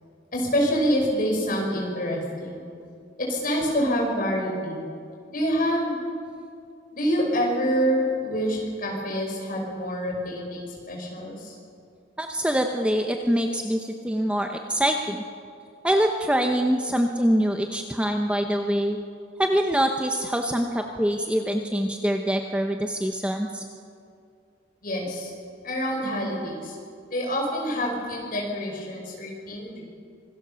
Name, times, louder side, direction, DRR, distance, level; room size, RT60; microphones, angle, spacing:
voice 1, 0.3-2.6 3.2-4.8 5.3-6.0 6.9-11.5 24.8-25.3 25.6-26.7 27.1-29.8, equal, 45° left, -2 dB, 5.8 m, -26 dB
voice 2, 12.2-15.2 15.8-19.0 19.4-23.6, equal, 5° right, 3 dB, 0.8 m, -24 dB
25.5 x 17.5 x 7.0 m, 2.4 s
head